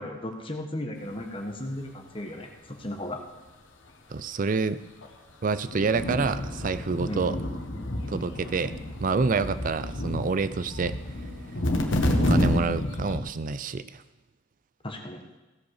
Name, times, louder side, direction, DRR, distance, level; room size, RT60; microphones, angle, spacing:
voice 1, 0.0-3.2 7.0-7.5 14.8-15.2, left 1 dB, 30° left, 3 dB, 1.3 m, -35 dB
voice 2, 4.1-4.8 5.4-7.4 8.1-8.7 9.0-11.0 12.2-14.0, right 4 dB, 45° right, 13 dB, 0.5 m, -27 dB
sound 1, 5.0-5.1 5.6-13.2, left 1 dB, 85° left, 1.4 m, -29 dB
16.0 x 5.4 x 6.5 m, 1.1 s
head